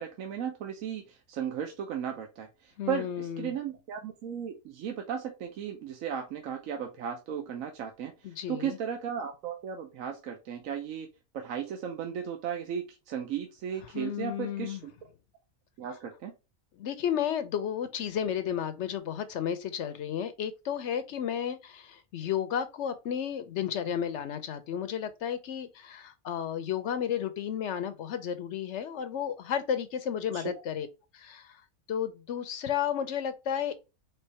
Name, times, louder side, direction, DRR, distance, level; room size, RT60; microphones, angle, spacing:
voice 1, 0.0-11.1 11.3-14.9 15.8-16.3 30.3-30.5, right 8 dB, 70° right, 1.0 m, -36 dB
voice 2, 2.8-3.5 8.2-8.8 13.9-14.8 16.8-30.9 31.1-31.6 31.9-33.7, left 9 dB, 65° left, 0.8 m, -32 dB
4.4 x 3.3 x 3.2 m
omnidirectional pair, 1.5 m